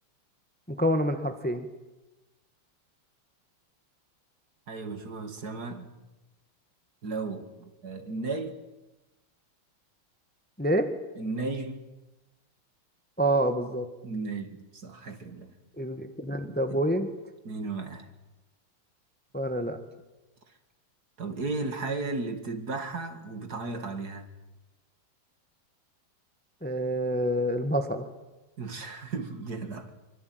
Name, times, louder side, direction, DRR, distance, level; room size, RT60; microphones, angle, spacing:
voice 1, 0.7-1.7 10.6-10.9 13.2-13.9 15.8-17.1 19.3-19.8 26.6-28.1, right 1 dB, 5° left, 1.5 m, -27 dB
voice 2, 4.7-6.0 7.0-8.6 11.2-11.8 14.0-15.5 16.4-16.8 17.4-18.1 21.2-24.3 28.6-30.0, right 3 dB, 50° right, 2.6 m, -35 dB
25.5 x 24.5 x 9.5 m
omnidirectional pair, 2.3 m